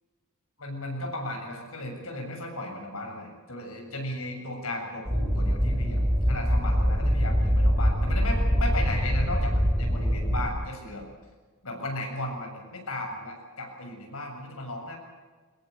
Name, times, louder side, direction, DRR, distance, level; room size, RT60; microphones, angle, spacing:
voice 1, 0.6-11.1 11.6-15.0, left 1 dB, 70° left, 2 dB, 7.4 m, -35 dB
sound 1, 5.1-10.5, equal, 5° right, 4.6 m, -24 dB
23.0 x 21.0 x 8.4 m, 1.4 s
head